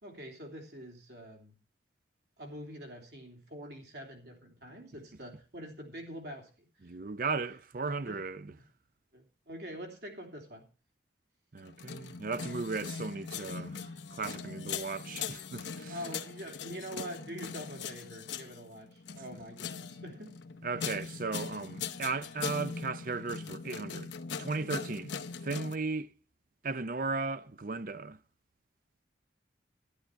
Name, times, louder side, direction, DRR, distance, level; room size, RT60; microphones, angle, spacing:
voice 1, 0.0-1.5 2.4-6.7 8.0-8.2 8.6-8.7 9.1-10.7 15.9-20.4 20.7-21.0, equal, 65° right, 3.2 m, -45 dB
voice 2, 6.8-8.6 11.5-16.0 20.6-24.1 24.4-25.1 25.4-26.1 26.6-28.2, right 4 dB, 50° right, 0.6 m, -36 dB
sound 1, 11.6-25.8, left 6 dB, 85° left, 0.8 m, -41 dB
11.5 x 11.5 x 4.6 m
head